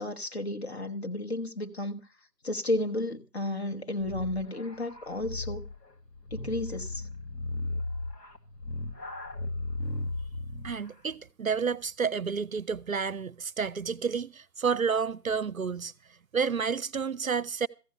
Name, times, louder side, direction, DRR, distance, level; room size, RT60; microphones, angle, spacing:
voice 1, 0.0-2.0 2.4-5.7 6.3-7.1, left 1 dB, 40° left, 1.2 m, -32 dB
sound 1, 4.0-10.9, left 2 dB, 80° left, 2.1 m, -36 dB
voice 2, 10.6-15.9 16.3-17.7, right 6 dB, 60° right, 0.6 m, -30 dB
14.5 x 8.2 x 6.6 m
figure-of-eight pair, 160°, 48 cm